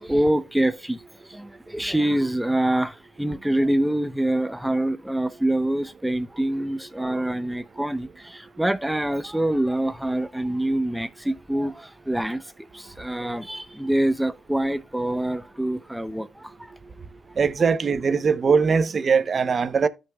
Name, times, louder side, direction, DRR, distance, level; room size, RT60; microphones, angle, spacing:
voice 1, 0.0-16.7, right 1 dB, 5° right, 0.7 m, -25 dB
voice 2, 17.4-19.9, right 5 dB, 40° right, 0.7 m, -21 dB
13.5 x 5.4 x 2.2 m
cardioid pair, 90°, 0 cm